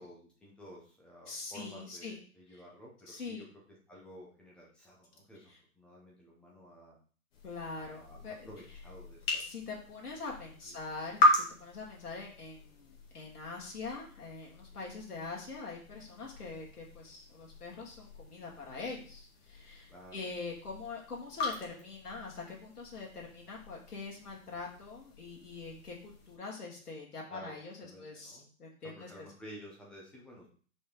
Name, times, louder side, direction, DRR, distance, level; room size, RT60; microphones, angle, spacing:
voice 1, 0.0-3.5 3.9-7.0 7.7-8.2 8.4-9.4 10.6-10.8 19.9-20.2 27.3-27.5 27.8-28.5 28.8-30.5, equal, ahead, -3 dB, 0.5 m, -52 dB
voice 2, 1.3-2.2 2.5-2.6 3.1-3.4 5.5-5.6 7.4-8.5 9.4-29.3, left 4 dB, 80° left, -2 dB, 2.5 m, -44 dB
sound 1, 7.3-26.4, left 1 dB, 40° left, 1.9 m, -38 dB
5.4 x 4.4 x 5.0 m, 0.43 s
hypercardioid pair, 135°, 45 cm